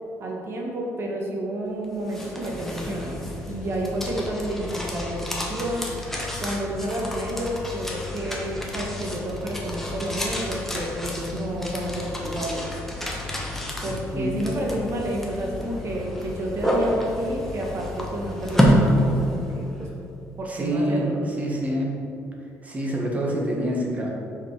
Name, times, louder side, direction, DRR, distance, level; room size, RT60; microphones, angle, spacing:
voice 1, 0.2-3.2 3.5-5.8 6.4-12.6 13.8-19.9 20.4-21.2, right 1 dB, 50° right, -1 dB, 1.5 m, -30 dB
sound 1, 1.8-19.8, equal, 5° left, 1.2 m, -28 dB
voice 2, 14.1-14.4 20.4-21.9 22.6-24.1, right 1 dB, 25° right, -2 dB, 1.6 m, -26 dB
5.9 x 5.4 x 4.8 m, 2.7 s
cardioid pair, 95°, 6 cm